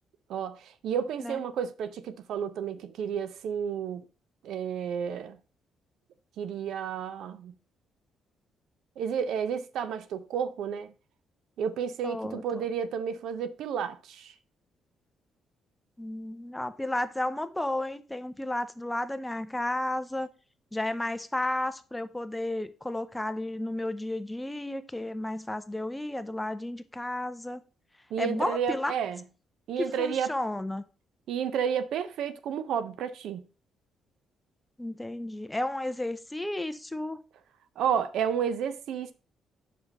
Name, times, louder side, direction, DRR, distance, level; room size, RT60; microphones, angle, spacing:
voice 1, 0.3-4.1 4.4-5.4 6.4-7.5 9.0-10.9 11.6-14.3 28.1-29.2 29.7-30.3 31.3-33.5 37.8-39.1, right 8 dB, 80° right, 0.6 m, -31 dB
voice 2, 12.0-12.4 16.0-20.3 20.7-27.6 28.2-28.9 29.8-30.8 34.8-37.2, left 1 dB, 10° left, 0.6 m, -32 dB
5.1 x 4.9 x 5.2 m
cardioid pair, 90°, 0 cm